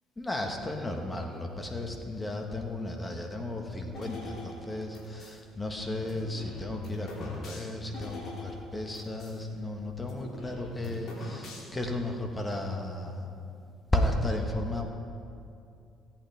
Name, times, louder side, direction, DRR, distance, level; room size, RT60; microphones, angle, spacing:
voice 1, 0.2-13.3 13.9-14.8, left 1 dB, 20° left, 3 dB, 1.5 m, -34 dB
sound 1, 3.9-5.4 6.0-9.4 9.6-9.7 10.0-11.9, left 2 dB, 60° left, 3.1 m, -44 dB
17.0 x 8.9 x 3.5 m, 2.5 s
supercardioid pair, 70°, 0 cm